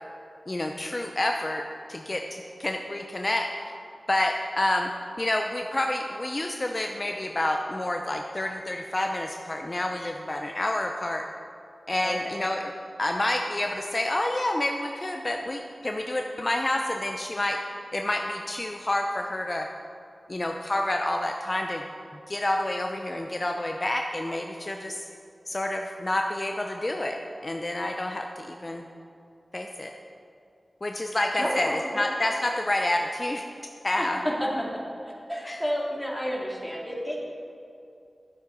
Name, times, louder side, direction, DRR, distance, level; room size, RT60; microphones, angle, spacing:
voice 1, 0.5-1.6 1.9-3.7 4.1-4.9 5.2-11.2 11.9-12.7 13.0-17.6 17.9-19.7 20.3-21.8 22.3-25.1 25.5-27.2 27.4-28.9 29.5-29.9 30.8-31.7 31.9-33.4 33.8-34.2 35.5-35.6, left 1 dB, 40° left, 3 dB, 0.7 m, -28 dB
voice 2, 12.0-12.3 31.4-32.0 34.0-34.5 35.1-37.2, equal, ahead, -3 dB, 2.7 m, -31 dB
11.0 x 7.9 x 5.2 m, 2.6 s
cardioid pair, 45°, 0 cm